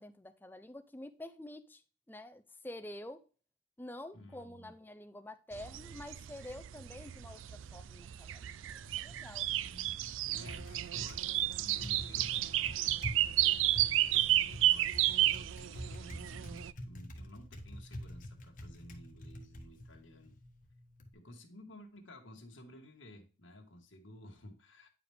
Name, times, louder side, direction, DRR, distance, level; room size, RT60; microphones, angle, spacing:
voice 1, 0.0-1.8 2.1-3.2 3.8-9.5, left 1 dB, 10° left, 0.5 m, -48 dB
voice 2, 4.1-4.7 9.5-12.8 13.6-20.4 21.1-24.9, left 1 dB, 85° left, 1.7 m, -54 dB
sound 1, 5.5-16.7, right 14 dB, 85° right, 0.4 m, -32 dB
Typing, 8.7-21.1, equal, 45° left, 1.2 m, -47 dB
9.8 x 5.0 x 3.5 m
head